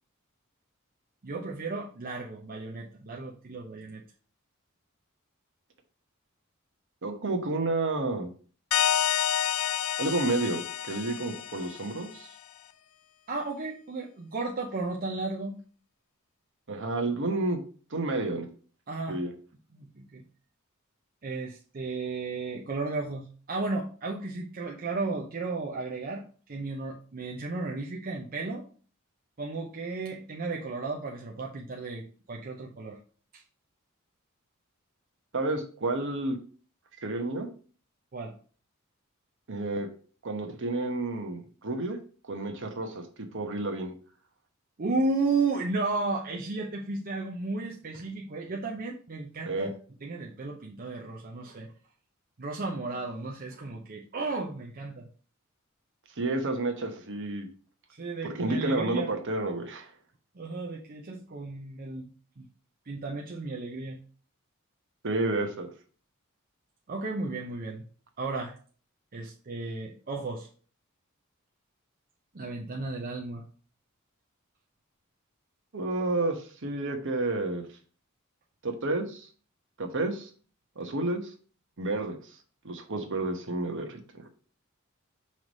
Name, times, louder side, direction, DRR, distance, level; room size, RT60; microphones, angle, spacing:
voice 1, 1.2-4.0 13.3-15.6 18.9-19.2 19.7-20.2 21.2-28.6 29.4-33.0 33.3-33.4 38.1-38.3 44.8-49.7 50.0-51.7 52.4-55.1 57.9-59.1 60.3-62.5 62.9-64.0 66.9-67.8 68.2-68.5 69.1-70.5 72.3-73.4, right 3 dB, 45° right, -1 dB, 0.7 m, -34 dB
voice 2, 7.0-8.3 10.0-12.3 16.7-17.6 17.9-18.5 19.1-19.3 35.3-36.4 37.0-37.5 39.5-39.9 40.2-42.0 42.3-43.1 43.3-43.9 49.5-49.7 56.2-57.5 58.2-59.9 65.0-65.7 75.7-77.6 78.6-79.3 79.8-80.3 80.8-81.3 81.8-82.2 82.6-84.2, right 2 dB, 60° right, 5 dB, 1.0 m, -30 dB
sound 1, 8.7-12.1, left 10 dB, 85° left, 0.4 m, -29 dB
5.7 x 3.2 x 5.2 m, 0.41 s
head